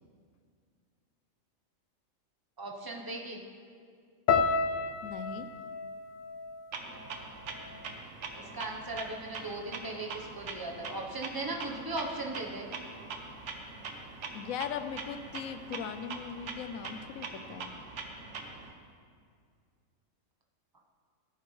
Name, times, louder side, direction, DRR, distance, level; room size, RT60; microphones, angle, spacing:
voice 1, 2.6-3.4 8.4-12.7, right 2 dB, 20° right, 0 dB, 0.8 m, -38 dB
sound 1, 4.3-8.5 8.7-9.5 10.1-10.3, left 5 dB, 70° left, 0.4 m, -33 dB
voice 2, 5.0-5.5 14.3-17.7, left 7 dB, 90° left, 10 dB, 1.0 m, -39 dB
Clock, 6.7-18.7, right 4 dB, 65° right, 1.2 m, -43 dB
15.0 x 8.9 x 3.2 m, 2.2 s
omnidirectional pair, 1.4 m